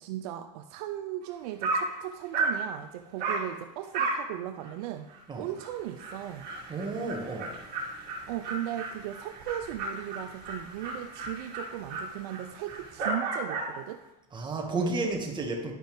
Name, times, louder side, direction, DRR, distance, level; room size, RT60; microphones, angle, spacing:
voice 1, 0.0-5.1 5.4-6.5 8.3-14.0 14.7-14.9, right 12 dB, 65° right, 8 dB, 0.5 m, -37 dB
Dog, 1.2-1.3 1.6-1.9 2.3-2.6 3.2-3.5 3.9-4.3 4.6-4.7 5.1-5.2 5.6-5.7 6.0-13.8, right 3 dB, 50° right, 2.4 m, -34 dB
voice 2, 6.7-7.5 14.3-15.7, right 2 dB, 20° right, 1 dB, 1.8 m, -32 dB
11.0 x 5.1 x 3.5 m, 0.95 s
hypercardioid pair, 95°, 21 cm